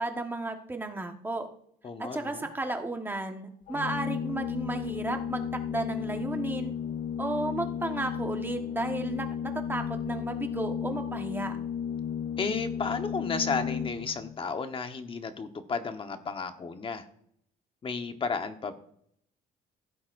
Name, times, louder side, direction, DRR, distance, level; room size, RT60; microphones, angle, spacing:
voice 1, 0.0-1.5 2.0-6.7 7.2-11.5, right 2 dB, 10° right, 4 dB, 1.3 m, -33 dB
voice 2, 1.8-2.5 12.4-17.0 17.8-18.7, left 4 dB, 30° left, 7 dB, 1.1 m, -33 dB
Organ, 3.7-14.4, left 8 dB, 50° left, 0.4 m, -34 dB
15.5 x 8.4 x 2.6 m, 0.69 s
cardioid pair, 110°, 17 cm